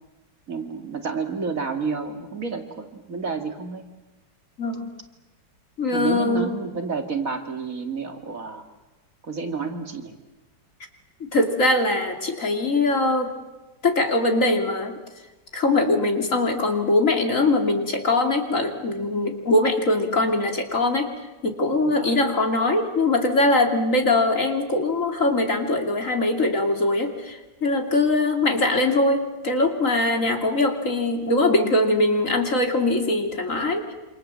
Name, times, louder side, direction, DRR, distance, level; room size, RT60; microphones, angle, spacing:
voice 1, 0.5-3.8 5.9-8.6 9.2-10.2 21.9-22.2, right 4 dB, 50° right, 5 dB, 2.6 m, -30 dB
voice 2, 5.8-6.5 11.2-13.3 13.8-14.9 15.5-21.1 21.4-33.9, left 2 dB, 45° left, 4 dB, 3.2 m, -22 dB
28.0 x 26.5 x 7.6 m, 1.1 s
omnidirectional pair, 1.9 m